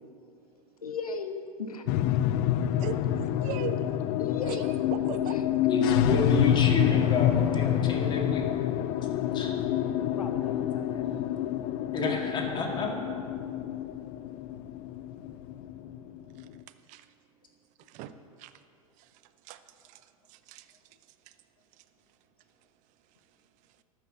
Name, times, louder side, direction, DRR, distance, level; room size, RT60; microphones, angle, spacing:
voice 1, 0.8-1.8 4.2-4.8 5.2-5.4 10.2-11.4, left 4 dB, 85° left, 7 dB, 0.8 m, -38 dB
sound 1, 1.9-16.5, left 11 dB, 50° left, 0.5 m, -27 dB
voice 2, 2.8-3.8 4.4-4.6 4.9-5.4 16.4-16.5 16.9-17.1 17.8-18.1 18.4-18.5 19.0-19.1 19.4-20.0 20.3-20.7, right 11 dB, 40° right, 11 dB, 0.7 m, -39 dB
voice 3, 5.7-8.4 9.3-9.5 11.9-13.1, left 2 dB, 25° left, 1 dB, 1.9 m, -30 dB
12.5 x 5.9 x 7.5 m, 2.4 s
hypercardioid pair, 95°, 18 cm